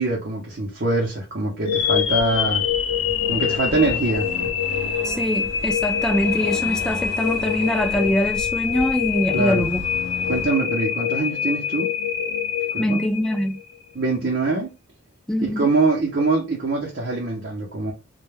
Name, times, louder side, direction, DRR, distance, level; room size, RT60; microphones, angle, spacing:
voice 1, 0.0-2.6 3.3-4.3 9.3-9.7 10.3-11.9 12.7-13.0 13.9-14.7 15.4-17.9, right 3 dB, 50° right, 0.6 m, -23 dB
sound 1, 1.6-13.8, left 8 dB, 85° left, 0.4 m, -25 dB
Accelerating revving vroom, 1.8-10.5, left 1 dB, 60° left, 0.9 m, -35 dB
voice 2, 5.0-9.8 12.8-13.6 15.3-15.6, equal, 5° left, 0.3 m, -23 dB
2.2 x 2.1 x 3.1 m
head